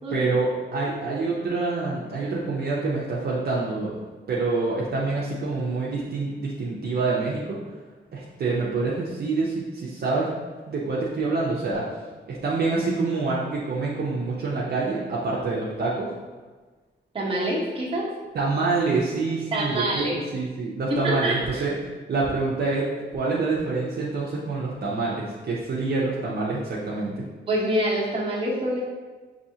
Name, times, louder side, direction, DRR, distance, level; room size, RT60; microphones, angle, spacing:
voice 1, 0.1-4.0 4.3-7.6 8.1-10.3 10.7-11.8 12.3-16.1 18.3-21.7 22.1-27.3, right 3 dB, 55° right, -5 dB, 0.7 m, -26 dB
voice 2, 17.1-18.1 19.5-20.1 21.0-21.6 27.5-28.8, right 1 dB, 30° right, -6 dB, 1.2 m, -26 dB
6.9 x 2.7 x 2.8 m, 1.3 s
wide cardioid pair, 130°, 19 cm